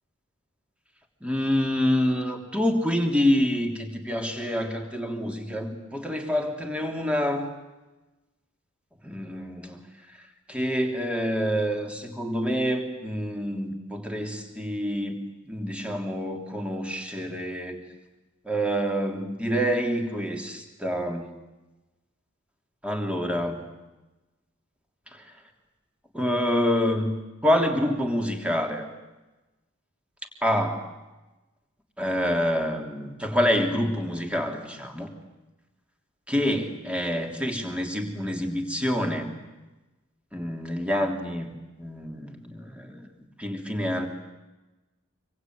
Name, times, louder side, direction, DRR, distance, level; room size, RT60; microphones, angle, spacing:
voice 1, 1.2-7.5 9.0-9.8 10.5-15.2 15.4-17.8 18.4-21.3 22.8-23.6 25.1-25.2 26.1-27.1 27.4-28.9 30.4-30.9 32.0-35.1 36.3-39.3 40.3-41.5 41.8-43.1 43.4-44.1, equal, 5° right, 3 dB, 3.2 m, -27 dB
26.5 x 24.0 x 9.5 m, 1.1 s
head